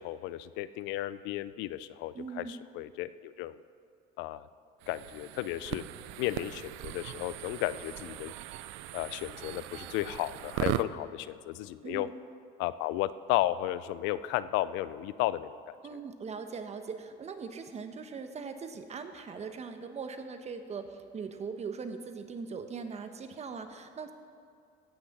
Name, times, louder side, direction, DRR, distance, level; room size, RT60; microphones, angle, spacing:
voice 1, 0.0-3.6 4.2-4.5 4.9-5.8 6.2-8.3 8.9-12.1 12.6-15.6 15.9-16.0, left 15 dB, 80° left, 15 dB, 0.5 m, -34 dB
voice 2, 2.1-2.6 11.8-12.1 15.8-24.1, right 5 dB, 35° right, 8 dB, 1.0 m, -40 dB
sound 1, 4.8-10.8, right 14 dB, 80° right, 0.5 m, -38 dB
16.0 x 6.3 x 5.9 m, 2.4 s
supercardioid pair, 100°, 19 cm